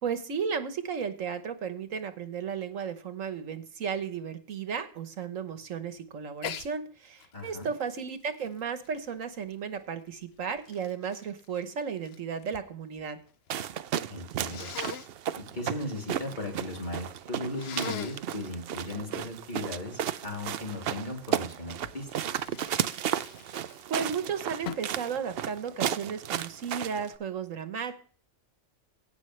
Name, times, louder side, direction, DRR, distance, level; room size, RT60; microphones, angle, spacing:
voice 1, 0.0-13.2 23.9-28.0, right 6 dB, 80° right, 9 dB, 1.5 m, -34 dB
Sneeze, 6.4-6.7 7.2-9.5 10.2-12.7 13.0-13.6 14.5-15.1 17.5-18.3 21.8-24.1 24.7-25.0, left 9 dB, 60° left, 0.8 m, -42 dB
voice 2, 7.3-7.7 14.1-14.7 15.3-22.1, left 1 dB, 35° left, -1 dB, 3.6 m, -37 dB
sound 1, 13.5-27.1, right 10 dB, 60° right, 0.7 m, -34 dB
17.0 x 6.3 x 3.2 m, 0.43 s
omnidirectional pair, 1.3 m